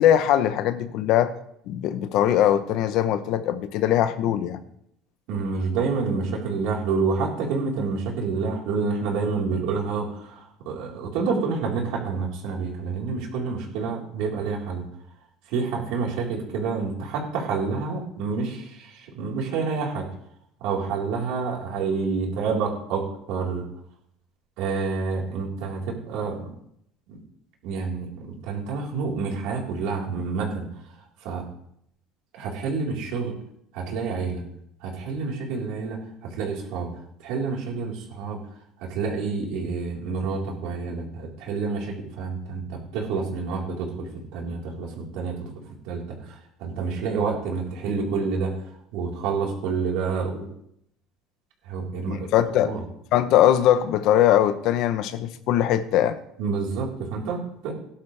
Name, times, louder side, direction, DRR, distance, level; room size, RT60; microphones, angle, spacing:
voice 1, 0.0-1.3 1.7-4.6 52.1-52.7 53.1-56.2, left 11 dB, 55° left, 12 dB, 0.8 m, -21 dB
voice 2, 5.3-14.9 15.5-20.1 20.6-23.6 24.6-26.5 27.1-27.2 27.6-30.6 31.2-31.5 32.3-33.3 33.7-34.4 34.8-36.9 37.2-38.4 38.8-45.3 45.8-48.5 48.9-50.5 51.6-52.3 52.6-52.8 56.4-57.7, right 4 dB, 70° right, -2 dB, 4.1 m, -28 dB
18.5 x 11.5 x 3.4 m, 0.74 s
cardioid pair, 170°, 0 cm